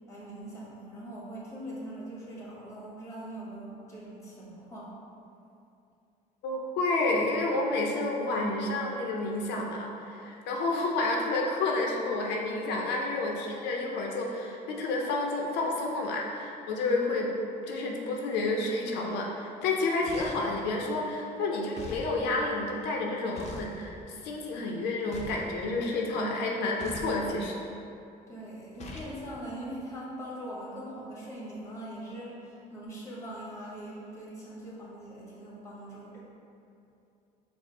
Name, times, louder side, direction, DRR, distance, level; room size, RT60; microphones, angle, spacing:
voice 1, 0.1-4.9 28.3-36.2, right 1 dB, 15° left, -6 dB, 1.2 m, -42 dB
voice 2, 6.4-17.3 17.6-27.6, left 2 dB, 90° left, -1 dB, 0.5 m, -30 dB
sound 1, 20.1-20.6 21.8-22.1 23.4-23.7 25.1-25.5 26.8-27.2 28.8-29.2, left 4 dB, 40° left, 0.6 m, -42 dB
4.9 x 2.0 x 3.9 m, 2.6 s
cardioid pair, 110°, 17 cm